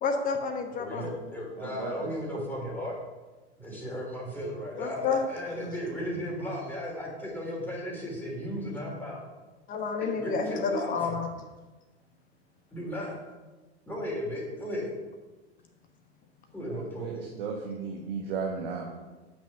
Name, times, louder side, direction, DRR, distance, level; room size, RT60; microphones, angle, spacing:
voice 1, 0.0-1.0 4.8-5.2 9.7-11.3, left 5 dB, 25° left, 4 dB, 1.1 m, -29 dB
voice 2, 0.8-3.0 3.6-9.2 10.0-11.1 12.7-13.2 13.9-14.9 16.5-17.3 18.1-18.2 18.9-19.1, equal, 5° left, -3 dB, 3.3 m, -35 dB
voice 3, 1.6-2.4 16.6-18.9, right 5 dB, 60° right, 0 dB, 1.3 m, -36 dB
8.3 x 6.1 x 5.9 m, 1.2 s
figure-of-eight pair, 95°, 34 cm